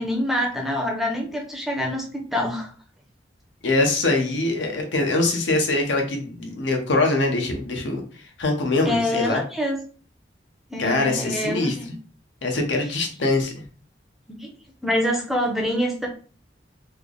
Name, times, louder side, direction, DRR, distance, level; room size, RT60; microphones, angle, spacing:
voice 1, 0.0-2.7 8.9-9.8 10.7-11.9 14.3-14.5 14.8-16.1, left 1 dB, ahead, 0 dB, 0.5 m, -26 dB
voice 2, 3.6-9.4 10.8-11.9 12.4-13.5, left 2 dB, 85° left, 2 dB, 0.8 m, -23 dB
3.2 x 2.0 x 3.7 m, 0.41 s
head